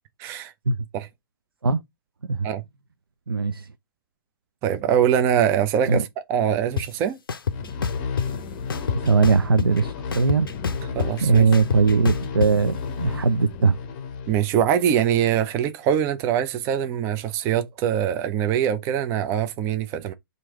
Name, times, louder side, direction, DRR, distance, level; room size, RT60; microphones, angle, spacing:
voice 1, 0.2-0.5 0.9-1.1 2.4-2.6 4.6-7.2 10.9-11.5 14.3-20.1, right 9 dB, 20° right, 0.4 m, -23 dB
voice 2, 3.3-3.7 5.9-6.0 8.9-10.5 11.2-13.8, right 4 dB, 85° right, 0.4 m, -20 dB
sound 1, 6.8-6.9 7.3-8.3 8.7-9.8 10.1-12.5, left 6 dB, 75° left, 0.4 m, -27 dB
sound 2, 7.5-14.9, left 5 dB, 30° left, 0.7 m, -33 dB
3.0 x 2.6 x 4.4 m
figure-of-eight pair, 130°, 12 cm